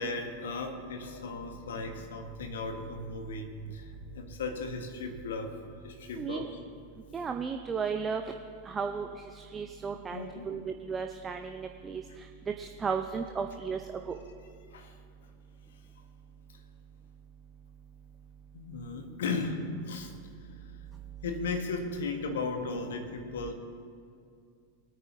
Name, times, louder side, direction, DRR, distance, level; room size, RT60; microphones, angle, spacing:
voice 1, 0.0-5.6 5.8-6.5 10.1-10.5 14.7-15.0 18.5-20.1 21.2-23.5, left 3 dB, 60° left, 5 dB, 1.4 m, -36 dB
voice 2, 6.2-6.5 7.1-8.2 8.7-9.1 9.4-12.0 12.6-13.8 14.1-14.2, right 5 dB, 20° right, 5 dB, 0.6 m, -34 dB
21.5 x 9.4 x 3.0 m, 2.4 s
figure-of-eight pair, 90°, 0 cm